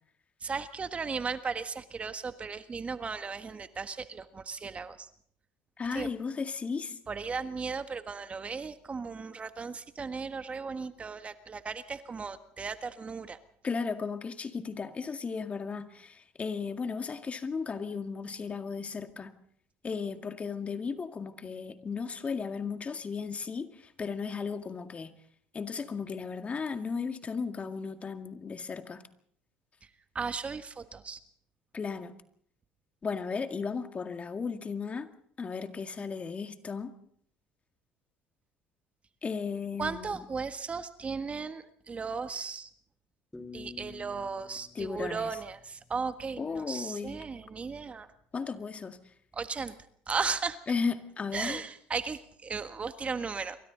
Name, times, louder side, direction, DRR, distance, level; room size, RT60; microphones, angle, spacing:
voice 1, 0.4-5.1 5.9-6.1 7.1-13.4 30.1-31.2 39.8-42.7 43.5-48.1 49.3-49.8 50.1-50.6 51.3-53.6, right 5 dB, 30° right, 1.5 m, -36 dB
voice 2, 5.8-7.0 13.6-19.3 19.8-25.1 25.5-29.0 31.7-32.1 33.0-35.1 35.4-36.9 39.2-40.2 44.8-45.3 46.4-47.2 48.3-49.0 50.7-51.6, left 5 dB, 30° left, 2.0 m, -35 dB
sound 1, 43.3-46.3, left 4 dB, 10° left, 4.6 m, -49 dB
27.5 x 24.0 x 4.0 m
hypercardioid pair, 75°, 4 cm